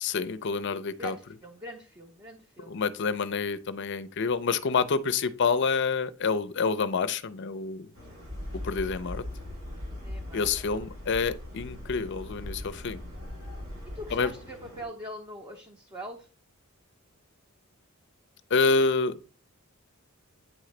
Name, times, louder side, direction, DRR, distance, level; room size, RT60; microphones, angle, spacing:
voice 1, 0.0-1.1 2.7-7.9 8.6-9.2 10.3-13.0 14.1-14.3 18.5-19.1, left 4 dB, 55° left, 0.5 m, -27 dB
voice 2, 1.0-2.8 9.9-10.5 13.9-16.3, right 1 dB, 20° right, 0.7 m, -42 dB
sound 1, 7.9-14.9, left 1 dB, 75° right, 3.9 m, -49 dB
sound 2, 8.2-14.3, left 1 dB, 45° right, 0.8 m, -40 dB
9.0 x 3.8 x 3.2 m
head